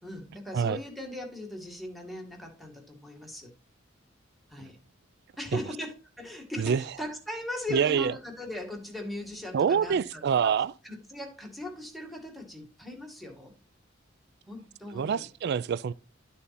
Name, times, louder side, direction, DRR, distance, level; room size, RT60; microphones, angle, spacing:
voice 1, 0.0-3.5 4.5-4.8 5.4-13.5 14.5-15.3, left 1 dB, ahead, 1.9 m, -39 dB
voice 2, 7.7-8.1 9.5-10.7 14.9-15.9, right 7 dB, 55° right, 0.3 m, -26 dB
12.0 x 4.2 x 4.1 m
head